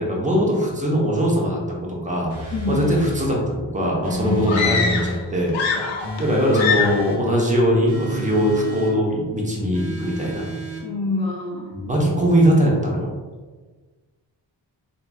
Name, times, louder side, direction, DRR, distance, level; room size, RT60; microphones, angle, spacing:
voice 1, 0.0-1.6 1.9-5.8 6.2-10.5 11.7-13.1, equal, 15° right, -2 dB, 0.8 m, -21 dB
sound 1, 2.3-3.3 4.0-5.2 6.0-7.2 7.9-9.0 9.7-10.9, left 1 dB, 75° right, 1.1 m, -30 dB
voice 2, 2.5-2.8 4.2-4.5 5.7-6.1 10.8-11.7, left 3 dB, 15° left, -6 dB, 0.4 m, -27 dB
sound 2, 4.5-5.2 5.5-6.2 6.5-7.1, left 6 dB, 75° left, 0.6 m, -23 dB
3.1 x 2.6 x 2.2 m, 1.4 s
cardioid pair, 55°, 47 cm